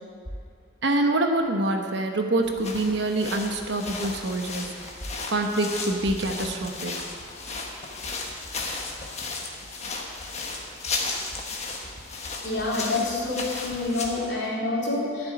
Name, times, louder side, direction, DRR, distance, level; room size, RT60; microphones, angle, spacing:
voice 1, 0.8-4.7 5.3-7.0, right 2 dB, 55° right, 4 dB, 1.1 m, -25 dB
sound 1, 2.4-14.3, left 3 dB, 30° left, 1.3 m, -35 dB
voice 2, 12.4-15.3, left 2 dB, 55° left, -6 dB, 3.3 m, -27 dB
12.5 x 7.0 x 9.6 m, 2.2 s
head